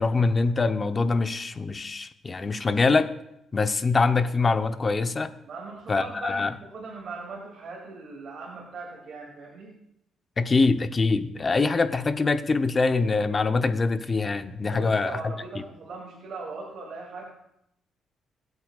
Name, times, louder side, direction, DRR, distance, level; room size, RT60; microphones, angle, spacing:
voice 1, 0.0-3.1 3.5-5.3 5.9-6.5 10.4-15.3, left 3 dB, 30° left, 9 dB, 0.8 m, -24 dB
voice 2, 5.4-9.8 14.6-17.3, right 3 dB, 55° right, -2 dB, 2.5 m, -39 dB
22.0 x 8.2 x 2.4 m, 0.81 s
cardioid pair, 90°, 0 cm